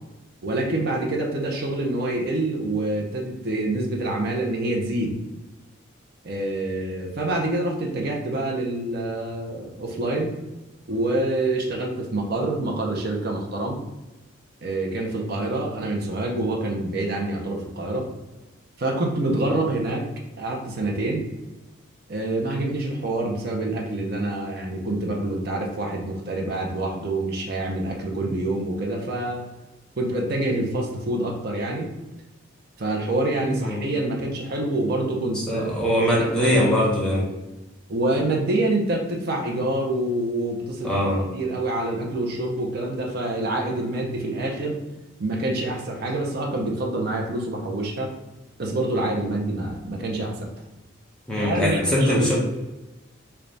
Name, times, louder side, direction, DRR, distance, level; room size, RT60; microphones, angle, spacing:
voice 1, 0.4-5.1 6.2-10.3 10.9-13.8 14.6-18.1 18.8-20.1 20.4-21.2 22.1-29.5 30.0-31.9 32.8-35.7 36.0-36.6 37.9-41.1 41.3-44.8 45.2-48.2 48.6-50.5 51.4-52.3, right 2 dB, 50° right, 0 dB, 0.6 m, -26 dB
voice 2, 35.5-37.3 40.8-41.2 51.3-52.3, equal, 5° left, -6 dB, 0.8 m, -21 dB
3.3 x 2.3 x 3.8 m, 1.0 s
head